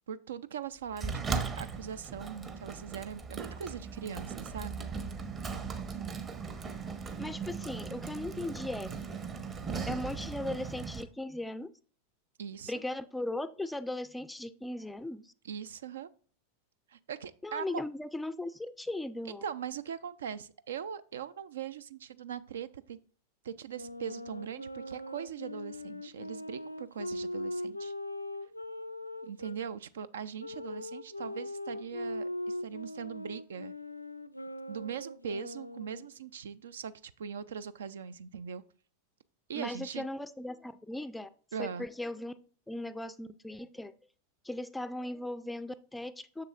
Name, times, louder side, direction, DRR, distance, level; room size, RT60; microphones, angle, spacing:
voice 1, 0.1-4.9 12.4-12.7 15.4-16.1 16.9-17.8 19.3-23.0 23.4-27.9 29.2-33.7 34.7-38.6 39.5-40.0 41.5-41.9, right 7 dB, 65° right, 0.3 m, -40 dB
Sliding door, 1.0-11.0, right 5 dB, 25° right, 0.8 m, -38 dB
voice 2, 7.2-8.9 9.9-11.7 12.7-15.3 17.4-19.4 39.5-41.3 41.6-42.3 42.7-43.9 44.4-46.4, left 1 dB, 5° left, 0.4 m, -38 dB
Wind instrument woodwind instrument, 23.7-29.6 30.4-36.1, left 1 dB, 85° left, 0.3 m, -40 dB
6.7 x 6.6 x 2.4 m
figure-of-eight pair, 90°, 0 cm